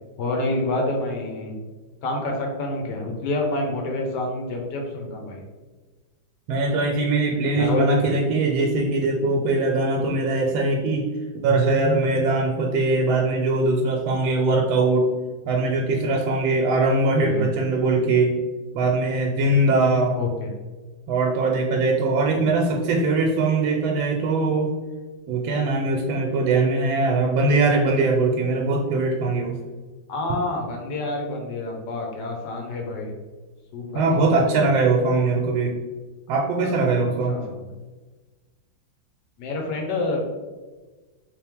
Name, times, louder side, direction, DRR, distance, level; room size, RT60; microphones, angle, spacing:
voice 1, 0.2-1.6 2.0-5.4 7.5-8.0 17.2-17.5 20.1-20.5 22.3-22.4 30.1-33.1 33.7-34.5 36.6-37.6 39.4-40.2, left 2 dB, 70° left, 1 dB, 1.2 m, -28 dB
voice 2, 6.5-11.0 11.4-15.1 15.4-18.3 18.7-20.2 21.1-24.7 25.3-29.6 33.9-35.7 36.3-37.4, right 3 dB, 85° right, 0 dB, 1.4 m, -21 dB
3.4 x 3.1 x 3.4 m, 1.3 s
omnidirectional pair, 2.2 m